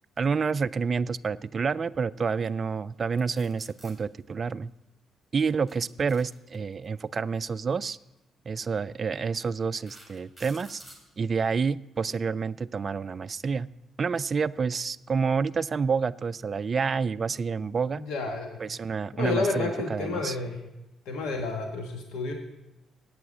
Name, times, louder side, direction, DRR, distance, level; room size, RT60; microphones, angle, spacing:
voice 1, 0.2-4.7 5.3-8.0 8.5-10.8 11.2-13.7 14.0-18.0 18.6-20.4, right 5 dB, 40° right, 14 dB, 0.3 m, -28 dB
sound 1, 3.2-3.9 5.4-6.9 8.0-8.2 8.8-8.9 9.5-11.0, right 1 dB, 15° left, 3.8 m, -50 dB
voice 2, 17.9-18.6 19.2-20.6 21.0-22.3, left 3 dB, 85° left, 2 dB, 1.5 m, -30 dB
8.8 x 7.6 x 8.4 m, 0.94 s
cardioid pair, 90°, 0 cm